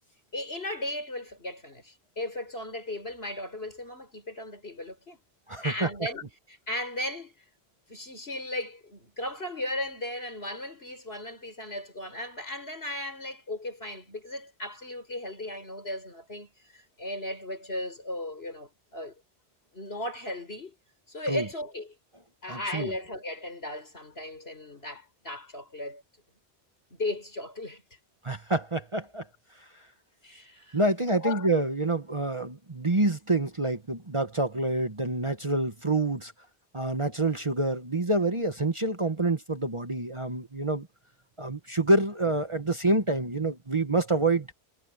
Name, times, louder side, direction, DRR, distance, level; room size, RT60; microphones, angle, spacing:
voice 1, 0.3-5.2 5.6-7.4 7.9-19.2 19.7-20.7 21.1-22.0 22.4-26.0 26.9-27.8 30.2-30.8 31.2-31.5, left 1 dB, 65° left, 6.2 m, -36 dB
voice 2, 5.5-5.9 21.3-21.5 22.5-22.9 28.2-29.3 29.6-29.7 30.7-36.3 36.7-40.9 41.4-44.5, right 2 dB, 30° right, 1.3 m, -27 dB
omnidirectional pair, 1.1 m